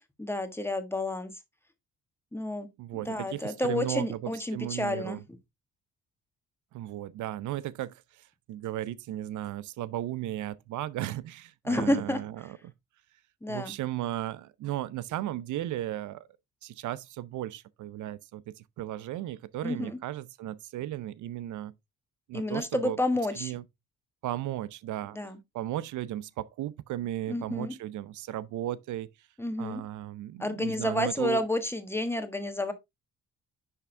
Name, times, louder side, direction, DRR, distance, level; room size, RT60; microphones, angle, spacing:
voice 1, 0.2-1.3 2.3-2.7 3.1-5.2 11.6-12.2 13.4-13.7 19.6-20.0 22.3-23.5 25.1-25.4 27.3-27.7 29.4-29.8 30.4-32.7, left 1 dB, 10° left, 1.4 m, -30 dB
voice 2, 2.8-5.2 6.7-12.6 13.5-16.3 16.6-21.7 22.3-23.0 23.4-23.6 24.2-25.2 25.5-29.3 29.6-31.4, right 13 dB, 75° right, 0.6 m, -35 dB
10.5 x 3.6 x 3.2 m
cardioid pair, 90°, 30 cm